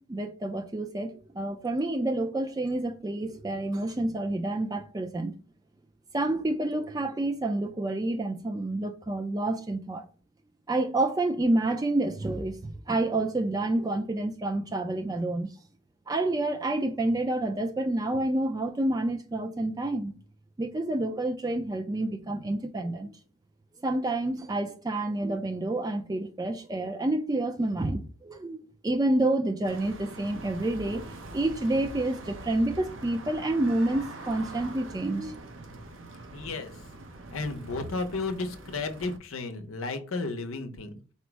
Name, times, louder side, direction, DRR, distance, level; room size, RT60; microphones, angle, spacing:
voice 1, 0.1-5.3 6.1-10.0 10.7-15.5 16.1-20.1 20.6-23.1 23.8-31.1 31.3-35.4, right 2 dB, 20° right, 0.3 m, -28 dB
sound 1, 29.6-39.2, right 2 dB, 75° right, 0.7 m, -43 dB
voice 2, 36.3-36.7 37.3-40.9, left 3 dB, 90° left, 0.7 m, -33 dB
4.3 x 2.0 x 4.5 m
head